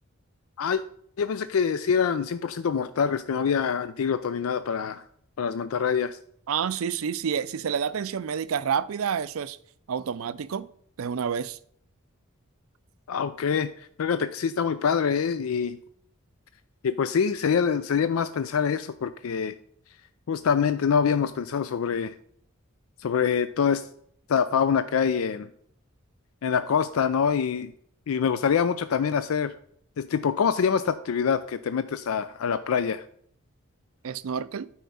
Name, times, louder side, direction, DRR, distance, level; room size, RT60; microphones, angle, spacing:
voice 1, 1.2-5.0 5.4-6.2 13.1-15.8 16.8-19.5 20.3-22.1 23.0-23.8 24.3-25.5 26.4-27.7 28.1-29.5 30.0-33.0, left 6 dB, 85° left, 0.4 m, -25 dB
voice 2, 6.5-9.6 9.9-10.7 11.0-11.6 34.0-34.7, right 7 dB, 80° right, 0.4 m, -29 dB
9.3 x 4.6 x 5.5 m
head